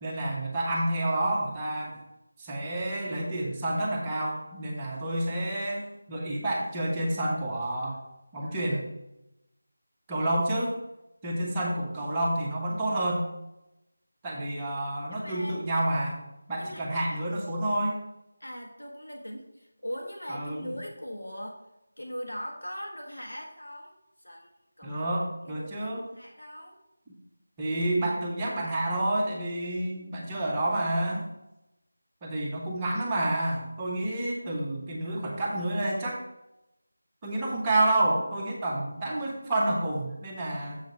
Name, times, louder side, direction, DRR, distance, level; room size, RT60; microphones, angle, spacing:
voice 1, 0.0-2.0 2.4-8.0 8.3-8.9 10.1-10.8 11.2-13.3 14.2-16.2 16.5-18.0 20.3-20.7 24.8-26.0 27.6-31.3 32.2-36.2 37.2-40.8, right 1 dB, 15° right, -4 dB, 1.1 m, -29 dB
voice 2, 15.1-15.5 16.6-16.8 18.4-21.6 22.0-23.9 24.2-24.5 24.8-25.1 25.5-26.8, equal, 80° left, 1 dB, 1.5 m, -40 dB
7.2 x 5.2 x 4.6 m, 0.90 s
figure-of-eight pair, 165°, 0 cm